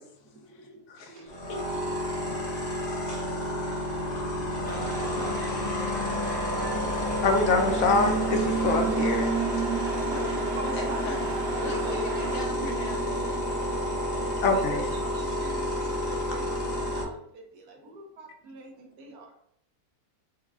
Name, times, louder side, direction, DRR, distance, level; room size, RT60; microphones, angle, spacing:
voice 1, 0.3-0.9 1.1-1.4 9.8-11.3 11.6-12.0 12.5-12.7 14.5-19.3, right 2 dB, 75° right, 1 dB, 1.4 m, -44 dB
voice 2, 0.9-1.7 10.8-14.4, left 2 dB, 90° left, 1 dB, 1.4 m, -40 dB
sound 1, 1.3-17.0, left 1 dB, 45° left, 0.6 m, -30 dB
Alarm, 3.7-17.1, right 5 dB, 55° right, 1.6 m, -36 dB
sound 2, 4.6-12.5, right 2 dB, 40° right, 1.1 m, -37 dB
voice 3, 7.2-9.4 14.4-14.9, left 3 dB, 65° left, 4 dB, 0.9 m, -24 dB
4.6 x 2.3 x 3.5 m, 0.69 s
omnidirectional pair, 1.7 m